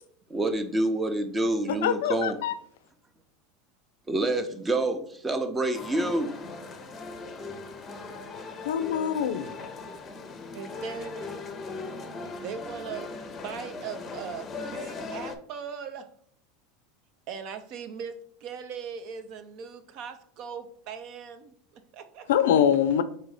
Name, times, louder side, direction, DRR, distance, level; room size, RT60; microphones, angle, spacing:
voice 1, 0.3-2.4 4.1-6.3, right 2 dB, 15° right, 7 dB, 0.7 m, -27 dB
voice 2, 1.7-2.5 8.6-9.5 22.3-23.0, left 9 dB, 80° left, 13 dB, 0.4 m, -24 dB
sound 1, 5.7-15.4, left 3 dB, 25° left, 0.6 m, -39 dB
voice 3, 10.5-11.4 12.4-16.1 17.3-21.5 21.9-22.3, right 6 dB, 55° right, 10 dB, 0.6 m, -39 dB
4.1 x 2.6 x 4.8 m, 0.62 s
supercardioid pair, 120°, 0 cm